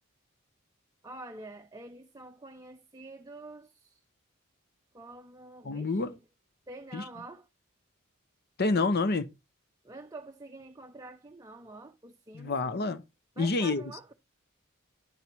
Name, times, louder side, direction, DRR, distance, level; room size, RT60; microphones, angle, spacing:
voice 1, 1.0-4.0 4.9-6.2 6.7-7.5 9.8-12.6 13.4-14.1, right 2 dB, 15° right, 0.6 m, -47 dB
voice 2, 5.6-6.1 6.9-7.0 8.6-9.3 12.3-13.0 13.4-13.8, left 3 dB, 50° left, 0.8 m, -28 dB
9.8 x 5.5 x 4.6 m
head